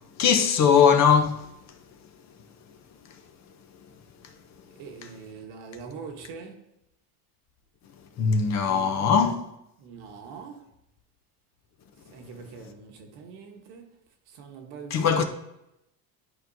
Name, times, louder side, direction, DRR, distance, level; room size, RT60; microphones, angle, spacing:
voice 1, 0.2-1.4 8.2-9.4 14.9-15.2, left 6 dB, 40° left, 0.7 m, -20 dB
voice 2, 4.8-6.6 8.6-9.2 9.8-10.7 12.1-13.9 14.3-15.1, right 5 dB, 70° right, 1.3 m, -43 dB
11.5 x 4.5 x 2.7 m
cardioid pair, 135°, 41 cm